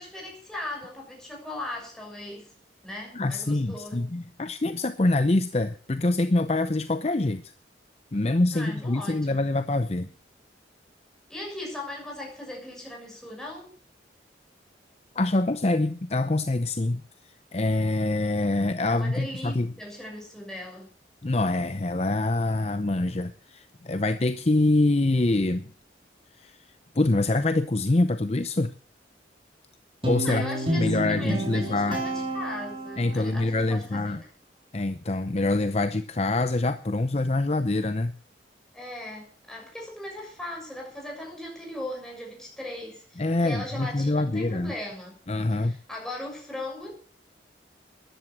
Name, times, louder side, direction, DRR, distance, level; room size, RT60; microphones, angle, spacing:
voice 1, 0.0-2.5 2.8-4.1 8.5-9.4 11.3-13.7 18.9-20.9 30.2-34.3 38.7-45.2 45.5-46.9, left 1 dB, 5° left, 6.7 m, -38 dB
voice 2, 3.1-7.5 8.1-10.1 15.2-17.0 17.5-19.7 21.2-25.6 26.4-26.6 27.0-28.7 30.0-30.4 30.8-32.0 33.0-34.2 34.7-38.2 43.2-44.7 45.3-45.8, left 2 dB, 35° left, 0.7 m, -25 dB
Guitar, 30.0-33.3, right 1 dB, 30° right, 5.1 m, -30 dB
13.5 x 11.0 x 7.8 m
head